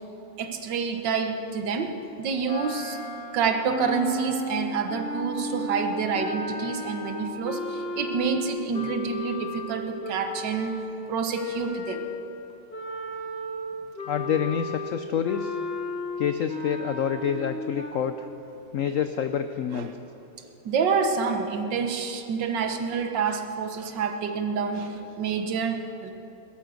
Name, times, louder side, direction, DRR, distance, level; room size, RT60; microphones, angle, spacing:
voice 1, 0.4-3.0 3.3-10.8 11.1-12.1 19.7-19.9 20.7-26.1, right 5 dB, 70° right, 6 dB, 1.7 m, -28 dB
sound 1, 2.4-12.3 12.7-17.9, left 2 dB, 35° left, 1.2 m, -34 dB
voice 2, 14.1-15.6 16.2-18.3 18.7-19.9, left 8 dB, 85° left, 9 dB, 0.7 m, -27 dB
17.0 x 13.0 x 6.3 m, 2.9 s
omnidirectional pair, 2.0 m